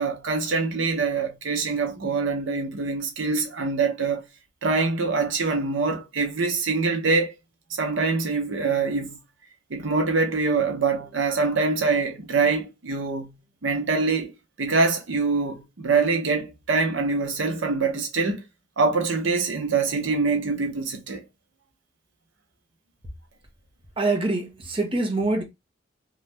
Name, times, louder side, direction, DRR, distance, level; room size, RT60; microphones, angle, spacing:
voice 1, 0.0-4.2 4.6-7.3 7.8-9.2 9.7-13.3 13.6-14.3 14.6-18.4 18.8-21.2, right 4 dB, 85° right, 0.8 m, -24 dB
voice 2, 24.0-25.4, right 2 dB, 30° right, 0.7 m, -24 dB
2.7 x 2.3 x 3.2 m
head